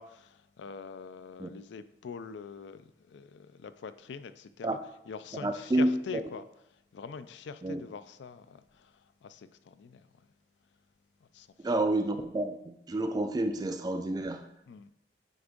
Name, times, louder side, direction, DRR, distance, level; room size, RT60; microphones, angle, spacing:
voice 1, 0.0-4.8 5.1-6.4 6.9-8.9 9.2-10.1 11.3-11.5 14.7-14.9, left 5 dB, 80° left, 13 dB, 0.4 m, -44 dB
voice 2, 5.4-6.2 7.6-7.8 11.6-14.4, right 1 dB, 20° right, 7 dB, 0.3 m, -29 dB
9.3 x 3.5 x 3.7 m, 0.81 s
head